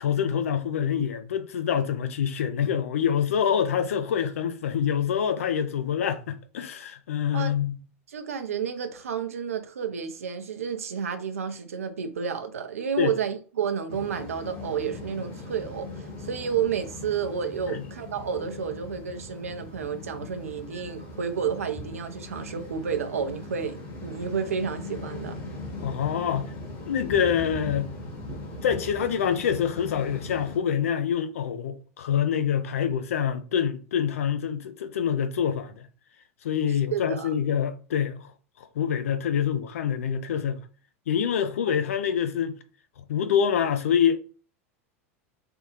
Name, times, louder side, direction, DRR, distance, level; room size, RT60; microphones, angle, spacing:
voice 1, 0.0-7.8 13.0-13.2 25.8-26.5 26.9-27.9 28.6-35.9 36.4-38.3 38.6-40.6 41.1-42.6 43.0-44.2, left 8 dB, 70° left, 0.5 m, -26 dB
voice 2, 8.1-25.4 36.9-37.3, right 7 dB, 80° right, 0.6 m, -31 dB
sound 1, 13.9-30.6, left 2 dB, 55° left, 1.5 m, -40 dB
3.4 x 2.3 x 3.1 m
figure-of-eight pair, 85°, 8 cm